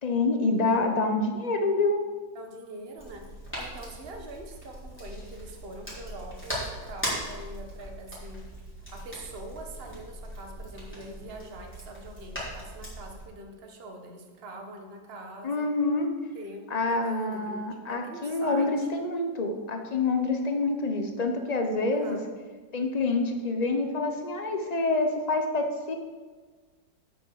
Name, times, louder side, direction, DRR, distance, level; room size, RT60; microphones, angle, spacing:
voice 1, 0.0-2.0 15.4-16.2 16.7-22.2 22.7-25.9, left 3 dB, 85° left, 4 dB, 0.3 m, -27 dB
voice 2, 2.3-15.7 16.3-16.6 16.9-18.9 21.9-22.2, right 2 dB, 35° right, 3 dB, 1.4 m, -43 dB
sound 1, 3.0-13.2, equal, 5° left, 3.9 m, -39 dB
8.8 x 6.5 x 7.7 m, 1.4 s
omnidirectional pair, 2.0 m